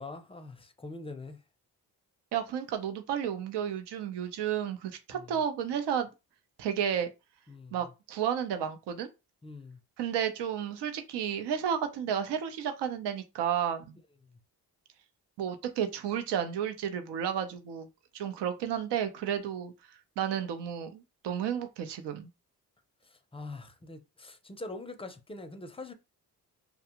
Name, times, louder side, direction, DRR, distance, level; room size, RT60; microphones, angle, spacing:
voice 1, 0.0-1.4 5.1-5.3 7.5-7.9 9.4-9.8 23.0-25.9, left 2 dB, 15° left, 0.5 m, -43 dB
voice 2, 2.3-6.1 6.6-7.1 7.7-9.1 10.0-14.0 15.4-17.9 18.1-19.7 20.2-22.3, right 8 dB, 75° right, 0.6 m, -32 dB
2.4 x 2.3 x 2.9 m
supercardioid pair, 60°, 41 cm